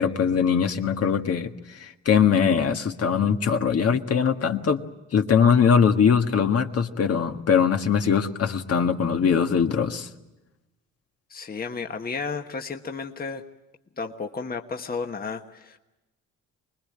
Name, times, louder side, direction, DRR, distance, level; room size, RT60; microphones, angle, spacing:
voice 1, 0.0-4.8 5.1-10.1, left 7 dB, 50° left, 5 dB, 1.7 m, -21 dB
voice 2, 11.3-13.4 14.0-15.8, left 4 dB, 30° left, 4 dB, 1.4 m, -32 dB
25.0 x 20.5 x 8.7 m, 1.0 s
cardioid pair, 90°, 30 cm